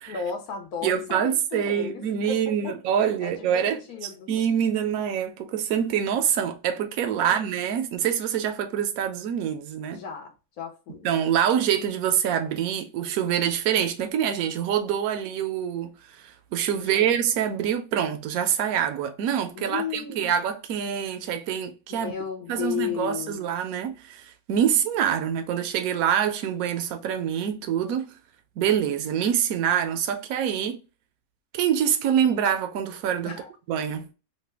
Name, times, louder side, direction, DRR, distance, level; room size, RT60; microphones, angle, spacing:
voice 1, 0.1-2.8 3.2-4.3 7.1-7.6 9.9-11.1 16.8-17.2 19.5-20.3 21.9-23.4 33.2-33.5, left 7 dB, 90° left, 1.3 m, -35 dB
voice 2, 0.8-3.8 4.3-10.0 11.0-15.9 16.5-22.1 22.5-28.1 28.6-30.8 31.5-33.4 33.7-34.1, right 9 dB, 80° right, 1.0 m, -25 dB
3.2 x 2.2 x 3.3 m
omnidirectional pair, 1.5 m